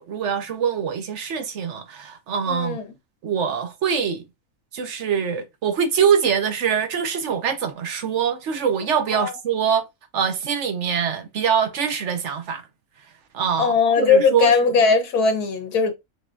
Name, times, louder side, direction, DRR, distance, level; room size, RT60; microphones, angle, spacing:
voice 1, 0.0-2.8 3.2-4.2 4.7-9.8 10.1-12.7 13.3-14.7, right 7 dB, 60° right, 1.0 m, -24 dB
voice 2, 2.5-2.8 9.1-9.3 13.6-15.9, left 5 dB, 90° left, 1.6 m, -19 dB
5.3 x 3.5 x 2.6 m
omnidirectional pair, 1.6 m